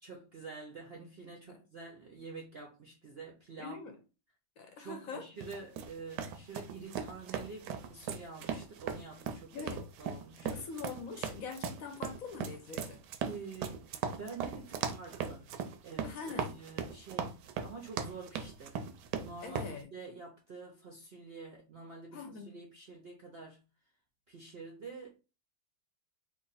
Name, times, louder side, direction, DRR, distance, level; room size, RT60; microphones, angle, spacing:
voice 1, 0.0-3.8 4.8-9.7 10.0-10.6 13.2-13.9 14.2-15.5 15.8-18.9 19.2-23.6 24.3-25.2, right 4 dB, 60° right, 0.6 m, -47 dB
voice 2, 3.6-3.9 4.6-5.3 9.5-9.8 10.4-13.0 16.0-16.6 19.4-19.9 22.1-22.6, left 5 dB, 65° left, 1.0 m, -43 dB
sound 1, 5.4-19.7, right 7 dB, 80° right, 1.1 m, -38 dB
3.1 x 2.5 x 4.0 m
omnidirectional pair, 1.8 m